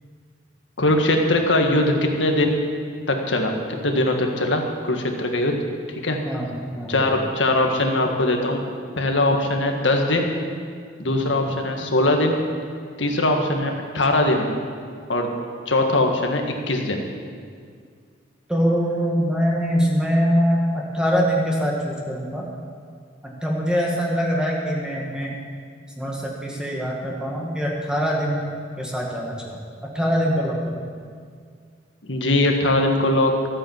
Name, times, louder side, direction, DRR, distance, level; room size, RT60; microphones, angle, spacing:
voice 1, 0.8-2.6 3.1-3.5 3.8-5.6 6.0-6.2 6.9-8.6 9.0-10.3 11.0-12.4 13.0-14.5 15.1-15.3 15.7-16.4 16.7-17.0 32.0-33.5, left 1 dB, 90° left, 3 dB, 1.7 m, -21 dB
voice 2, 6.2-7.0 11.0-11.3 18.5-22.4 23.2-25.3 26.0-28.4 28.8-29.6 29.9-30.6, equal, 5° right, -2 dB, 1.5 m, -23 dB
14.0 x 8.7 x 7.3 m, 2.1 s
head